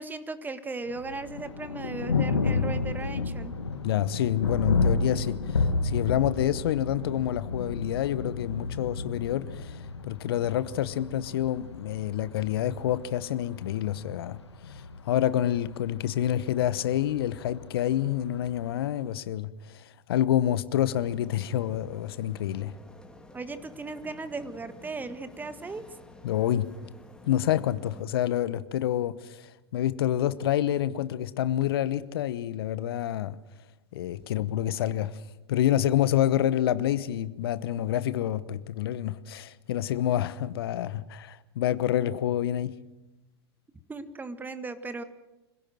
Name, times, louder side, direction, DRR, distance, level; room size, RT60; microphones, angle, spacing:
voice 1, 0.0-3.5 23.3-25.8 41.0-41.1 43.9-45.0, right 3 dB, 15° right, 1.6 m, -37 dB
Thunder, 0.9-18.9, left 4 dB, 80° left, 2.0 m, -32 dB
voice 2, 3.8-14.4 14.7-22.7 26.2-26.7 27.2-33.4 33.9-35.2 35.5-42.8, left 11 dB, 60° left, 1.0 m, -28 dB
sound 1, 21.0-28.0, left 2 dB, 5° left, 3.0 m, -51 dB
26.0 x 17.0 x 7.7 m
figure-of-eight pair, 95°, 14 cm